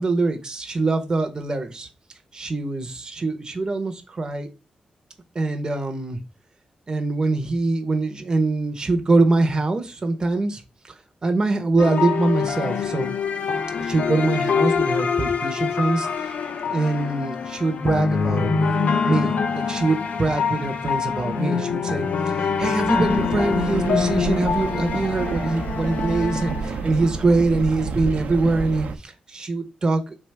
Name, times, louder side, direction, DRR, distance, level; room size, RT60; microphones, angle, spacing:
voice 1, 0.0-1.9 2.3-4.5 5.3-6.2 6.9-10.9 11.2-13.1 13.8-16.3 16.7-18.5 19.0-30.2, right 3 dB, 30° right, 5 dB, 0.8 m, -23 dB
sound 1, 11.8-27.3, left 5 dB, 70° left, 0.5 m, -25 dB
sound 2, 22.9-29.0, right 5 dB, 85° right, 0.7 m, -30 dB
3.4 x 3.3 x 4.6 m, 0.28 s
wide cardioid pair, 150°, 3 cm